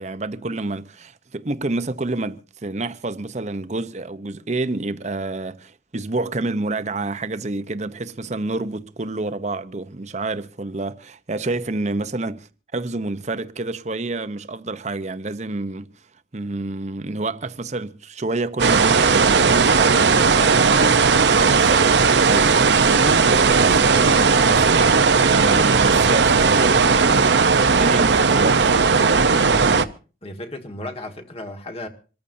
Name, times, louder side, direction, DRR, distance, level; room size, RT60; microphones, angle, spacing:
voice 1, 0.0-15.9 16.3-27.2 27.7-28.8, right 2 dB, 40° right, 0.8 m, -28 dB
sound 1, 18.6-29.8, right 5 dB, 70° right, 0.8 m, -16 dB
voice 2, 20.0-20.4 29.4-29.9 30.2-31.9, left 1 dB, 35° left, 1.8 m, -35 dB
26.5 x 14.0 x 2.7 m
head